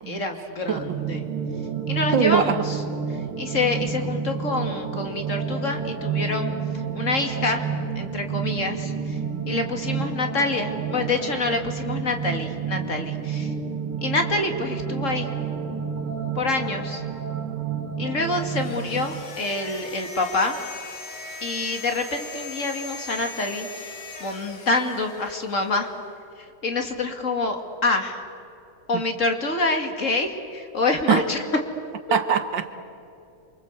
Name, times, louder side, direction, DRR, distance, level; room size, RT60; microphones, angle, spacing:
voice 1, 0.0-1.2 1.9-2.8 3.1-7.7 8.0-9.2 9.5-13.5 14.0-15.3 16.3-17.0 18.0-20.6 21.4-23.9 24.2-25.9 26.4-28.2 28.9-31.5, left 3 dB, 35° left, 5 dB, 2.5 m, -27 dB
sound 1, 0.7-19.2, right 7 dB, 90° right, 2.5 m, -30 dB
voice 2, 2.1-2.6 31.1-31.2 32.1-32.7, right 7 dB, 60° right, 9 dB, 1.8 m, -21 dB
sound 2, 18.4-25.7, left 3 dB, 85° left, 3.4 m, -39 dB
28.5 x 24.5 x 8.2 m, 2.6 s
omnidirectional pair, 2.3 m